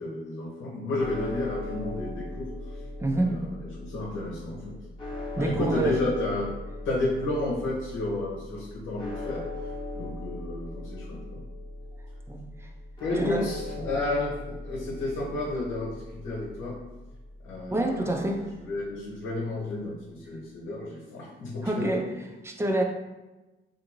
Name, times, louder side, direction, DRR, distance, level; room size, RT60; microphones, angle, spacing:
voice 1, 0.0-2.8 3.1-4.7 5.3-6.5 6.8-9.4 9.9-11.4 13.0-14.3 14.6-16.7 17.4-21.9, left 2 dB, 85° left, -6 dB, 0.9 m, -32 dB
sound 1, 1.0-19.2, left 2 dB, 25° left, 0.9 m, -39 dB
voice 2, 3.0-3.3 5.4-6.0 12.3-12.4 13.2-13.5 17.7-18.5 21.6-22.0 22.4-22.8, right 1 dB, 15° right, 2 dB, 0.4 m, -26 dB
2.6 x 2.5 x 2.9 m, 1.1 s
cardioid pair, 90°, 20 cm